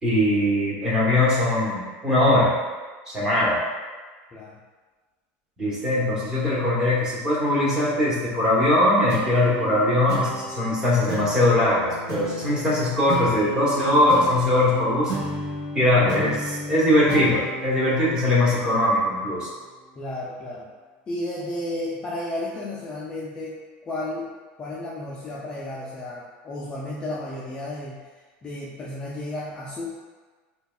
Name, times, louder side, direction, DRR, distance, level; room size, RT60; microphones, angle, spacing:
voice 1, 0.0-2.5 3.1-3.6 5.6-15.1 15.7-19.5, left 1 dB, 15° right, -7 dB, 0.9 m, -21 dB
sound 1, 9.1-19.9, right 1 dB, 50° right, 1.1 m, -35 dB
voice 2, 20.0-20.7 21.1-23.6 23.8-24.3 24.6-28.0 28.4-29.9, left 1 dB, 20° left, -5 dB, 0.3 m, -32 dB
5.4 x 2.2 x 2.2 m, 1.4 s
supercardioid pair, 155°, 5 cm